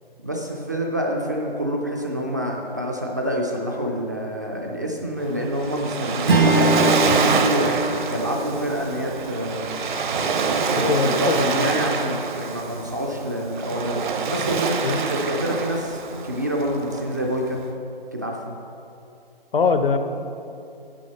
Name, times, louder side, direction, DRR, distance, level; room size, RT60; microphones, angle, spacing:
voice 1, 0.2-9.7 10.4-17.6 18.1-18.5, equal, 20° right, -1 dB, 0.3 m, -27 dB
Waves surf, 5.2-17.6, right 5 dB, 55° right, 0.7 m, -26 dB
Strum, 6.3-10.9, right 1 dB, 75° right, 1.4 m, -24 dB
voice 2, 10.7-11.7 14.8-15.0 19.5-20.0, left 5 dB, 70° left, 9 dB, 0.7 m, -22 dB
7.2 x 6.2 x 5.6 m, 2.6 s
figure-of-eight pair, 145°, 30 cm